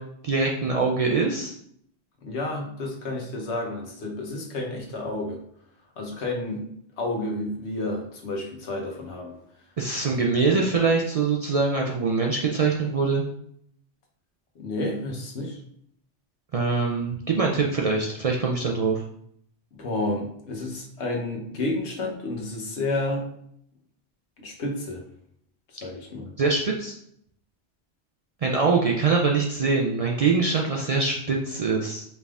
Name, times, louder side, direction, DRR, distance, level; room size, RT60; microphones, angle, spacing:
voice 1, 0.0-1.5 9.8-13.2 16.5-19.0 26.4-26.9 28.4-32.0, right 4 dB, 65° right, 0 dB, 0.3 m, -23 dB
voice 2, 2.2-5.4 6.0-6.6 7.0-9.4 14.5-15.6 19.8-23.3 24.4-25.0 25.8-26.3, left 2 dB, 85° left, 0 dB, 1.1 m, -30 dB
4.5 x 3.4 x 2.4 m, 0.69 s
omnidirectional pair, 1.1 m